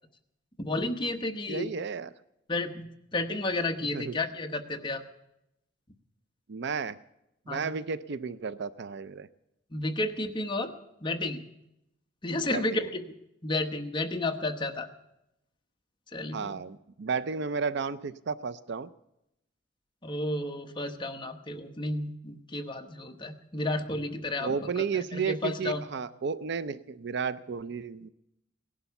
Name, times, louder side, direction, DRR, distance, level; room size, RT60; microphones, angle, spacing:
voice 1, 0.6-1.7 2.5-2.9 3.1-5.0 7.5-7.7 9.7-10.7 11.0-11.4 12.2-13.0 13.4-14.9 16.1-16.6 20.0-24.8 25.1-25.8, left 2 dB, 25° left, 5 dB, 1.0 m, -32 dB
voice 2, 1.5-2.1 3.8-4.2 6.5-7.0 7.5-9.3 12.4-12.8 16.3-18.9 24.4-28.1, right 5 dB, 60° right, 15 dB, 0.5 m, -33 dB
18.0 x 11.5 x 6.9 m, 0.85 s
head